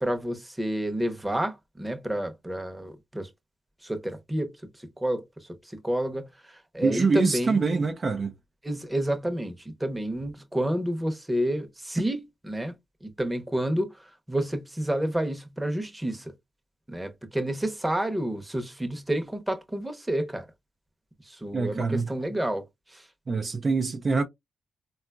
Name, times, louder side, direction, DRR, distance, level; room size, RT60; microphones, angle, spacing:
voice 1, 0.0-3.3 3.8-7.9 8.6-12.7 13.0-16.3 16.9-20.5 21.2-23.1, right 1 dB, 10° right, 0.8 m, -30 dB
voice 2, 6.8-8.3 21.5-22.1 23.3-24.2, right 4 dB, 45° right, 0.5 m, -25 dB
3.6 x 2.3 x 2.3 m
cardioid pair, 60°, 0 cm